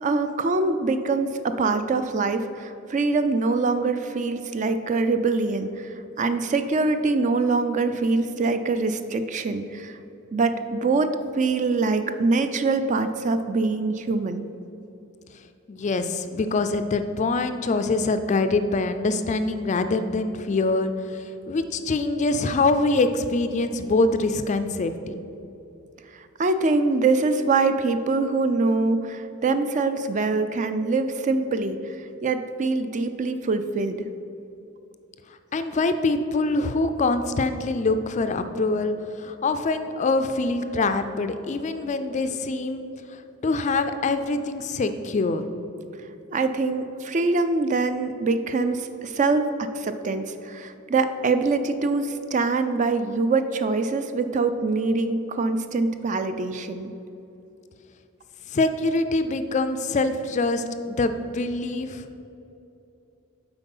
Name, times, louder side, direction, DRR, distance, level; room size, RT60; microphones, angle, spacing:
voice 1, 0.0-10.0 10.3-14.4 26.1-34.1 46.3-56.9, right 3 dB, 35° right, 9 dB, 0.4 m, -24 dB
voice 2, 15.7-24.9 35.5-42.8 43.4-45.5 58.5-62.2, left 3 dB, 35° left, 9 dB, 0.4 m, -24 dB
7.9 x 4.6 x 5.4 m, 2.9 s
head